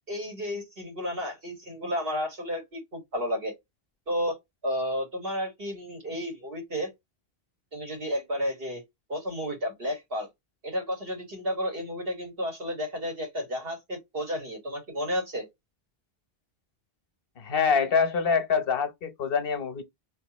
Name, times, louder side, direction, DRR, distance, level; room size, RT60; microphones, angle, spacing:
voice 1, 0.1-3.5 4.1-4.4 4.6-6.9 7.7-8.8 9.1-10.3 10.6-15.5, equal, 65° right, 2.0 m, -32 dB
voice 2, 17.4-19.8, left 6 dB, 65° left, 1.1 m, -25 dB
3.4 x 2.8 x 3.0 m
omnidirectional pair, 1.0 m